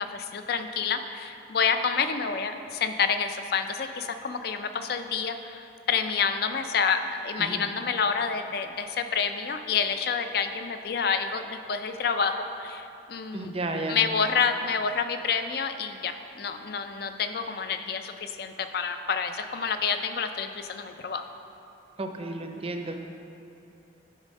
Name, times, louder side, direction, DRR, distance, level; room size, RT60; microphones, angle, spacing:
voice 1, 0.0-13.5 13.9-21.3, left 6 dB, 55° left, 8 dB, 0.4 m, -28 dB
voice 2, 13.3-14.0 22.0-22.9, right 2 dB, 30° right, 4 dB, 0.5 m, -32 dB
9.9 x 4.1 x 5.2 m, 2.8 s
head